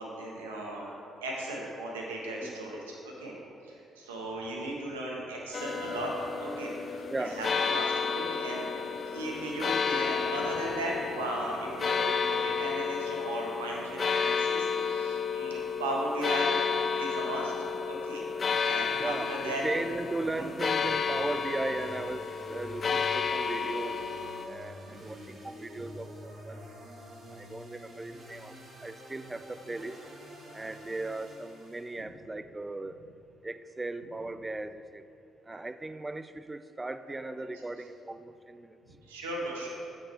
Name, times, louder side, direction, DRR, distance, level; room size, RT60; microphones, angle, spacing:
voice 1, 0.0-3.3 3.6-6.1 6.4-6.7 7.2-8.7 9.1-16.5 17.0-17.5 17.8-18.2 18.6-19.8 20.3-20.5 24.8-24.9 35.5-35.6 37.1-37.2 39.0-39.7, right 1 dB, 90° right, -2 dB, 1.1 m, -36 dB
voice 2, 2.4-2.7 7.1-7.4 19.0-24.0 24.5-26.6 27.3-28.5 28.8-30.0 30.5-32.9 33.4-35.0 35.5-38.7, right 2 dB, 20° right, 12 dB, 0.4 m, -37 dB
sound 1, 5.5-24.5, left 6 dB, 45° left, 0.4 m, -31 dB
sound 2, 18.5-32.0, equal, 45° right, 1.5 m, -48 dB
8.0 x 5.8 x 4.3 m, 2.7 s
hypercardioid pair, 50°, 0 cm